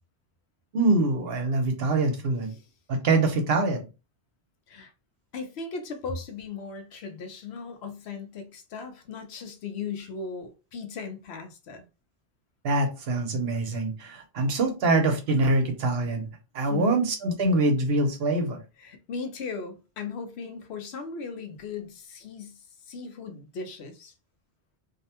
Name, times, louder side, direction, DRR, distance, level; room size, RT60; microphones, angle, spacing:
voice 1, 0.7-2.5 2.9-3.8 12.6-16.3 16.5-18.6, right 2 dB, 65° right, 0.9 m, -24 dB
voice 2, 5.3-11.8 16.7-17.0 18.8-24.1, left 5 dB, 75° left, 0.9 m, -37 dB
2.6 x 2.1 x 2.8 m
omnidirectional pair, 1.1 m